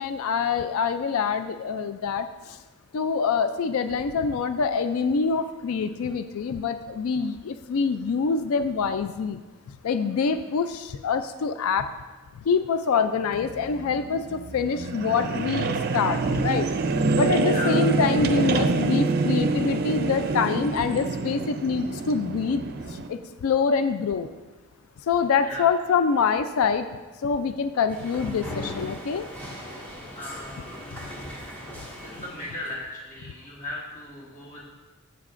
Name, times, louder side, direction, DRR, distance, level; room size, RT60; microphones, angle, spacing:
voice 1, 0.0-2.6 2.9-9.4 9.8-11.9 12.5-16.7 17.2-22.6 22.9-24.3 25.1-26.9 27.2-29.3, left 5 dB, 80° left, 10 dB, 0.4 m, -25 dB
sound 1, 13.3-23.1, right 3 dB, 45° right, 0.5 m, -26 dB
sound 2, 27.9-32.8, equal, 10° left, 1.7 m, -39 dB
voice 2, 30.1-30.9 32.0-34.7, left 1 dB, 35° left, -4 dB, 1.4 m, -37 dB
15.5 x 5.7 x 2.5 m, 1.3 s
head